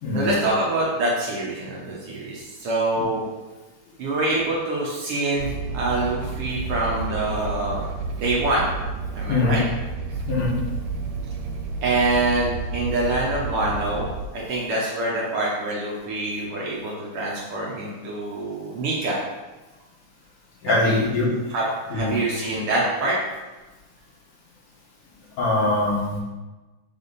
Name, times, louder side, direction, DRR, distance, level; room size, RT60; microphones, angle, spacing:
voice 1, 0.1-3.2 4.0-7.8 8.1-8.7 9.1-9.6 10.1-10.2 11.8-19.2 20.7-20.9 21.5-21.6 21.9-23.2, right 2 dB, 65° right, -4 dB, 1.5 m, -25 dB
sound 1, 5.4-14.3, right 4 dB, 90° right, 2.1 m, -31 dB
voice 2, 20.6-21.3 21.9-22.1 25.4-26.1, left 2 dB, 80° left, -7 dB, 3.2 m, -22 dB
6.7 x 3.5 x 4.1 m, 1.2 s
omnidirectional pair, 3.6 m